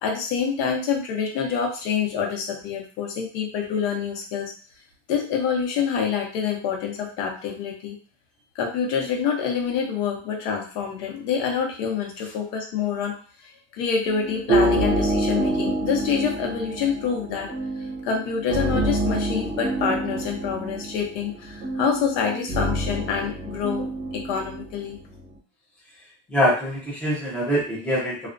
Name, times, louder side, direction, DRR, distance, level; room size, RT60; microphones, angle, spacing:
voice 1, 0.0-4.5 5.1-8.0 8.5-13.2 13.7-17.5 18.0-25.0, left 6 dB, 75° left, 1 dB, 0.8 m, -26 dB
sound 1, 14.0-25.2, right 1 dB, 35° right, 0.6 m, -27 dB
voice 2, 26.3-28.3, equal, 5° left, -6 dB, 0.5 m, -24 dB
2.3 x 2.1 x 2.4 m, 0.38 s
cardioid pair, 170°, 30 cm